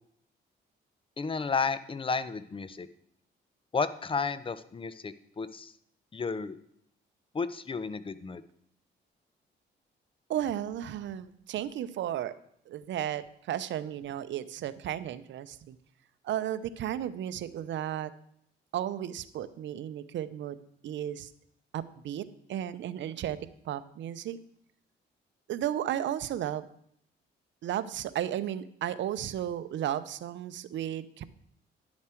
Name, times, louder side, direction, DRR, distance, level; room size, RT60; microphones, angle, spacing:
voice 1, 1.2-2.9 3.7-5.7 6.1-6.6 7.3-8.4, left 5 dB, 25° left, 14 dB, 0.6 m, -32 dB
voice 2, 10.3-12.3 12.7-15.8 16.2-18.1 18.7-20.6 20.8-21.3 21.7-22.2 22.5-23.4 23.6-24.4 25.5-26.6 27.6-31.2, right 11 dB, 70° right, 14 dB, 0.6 m, -34 dB
10.5 x 7.3 x 4.5 m, 0.71 s
cardioid pair, 90°, 20 cm